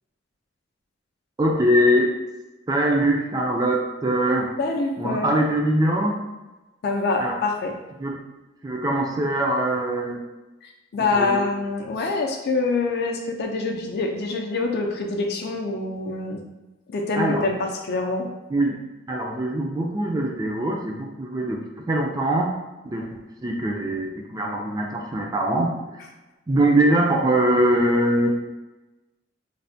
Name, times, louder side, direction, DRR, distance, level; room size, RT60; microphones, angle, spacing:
voice 1, 1.4-2.1 2.7-4.5 5.0-6.2 7.2-7.3 8.0-8.2 8.6-10.2 11.0-11.4 17.2-17.5 18.5-18.8 19.1-21.6 21.9-22.6 22.8-25.7 26.5-28.3, right 1 dB, 20° right, 0 dB, 0.3 m, -22 dB
voice 2, 4.6-5.4 6.8-7.7 10.6-16.4 16.9-18.3, left 3 dB, 55° left, 2 dB, 0.4 m, -25 dB
3.2 x 2.1 x 2.6 m, 1.1 s
head